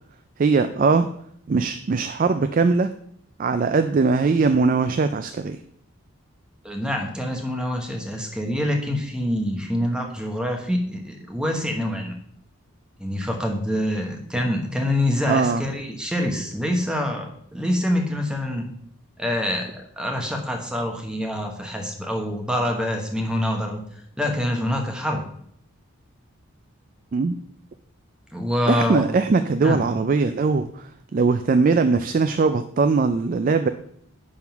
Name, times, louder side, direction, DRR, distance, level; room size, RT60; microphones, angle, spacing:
voice 1, 0.4-1.1 1.5-2.9 3.4-5.6 15.3-15.6 27.1-27.3 28.7-33.7, right 4 dB, 40° right, 9 dB, 0.3 m, -20 dB
voice 2, 6.6-12.1 13.0-18.7 19.2-23.8 24.2-25.2 28.3-29.1 29.6-29.8, left 1 dB, 5° right, 2 dB, 1.1 m, -26 dB
10.5 x 3.7 x 5.8 m, 0.68 s
head